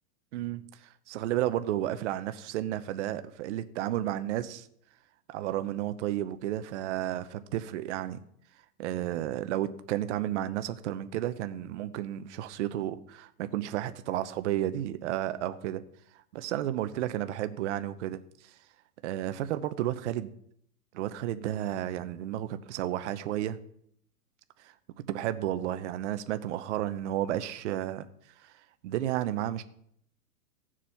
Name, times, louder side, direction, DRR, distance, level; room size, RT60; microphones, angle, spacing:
voice 1, 0.3-4.7 5.3-8.2 8.8-15.8 16.3-18.2 19.0-20.3 20.9-23.6 25.1-28.1 28.4-28.5 28.8-29.6, right 12 dB, 45° right, 11 dB, 0.8 m, -32 dB
15.5 x 7.5 x 5.8 m, 0.69 s
hypercardioid pair, 150°, 47 cm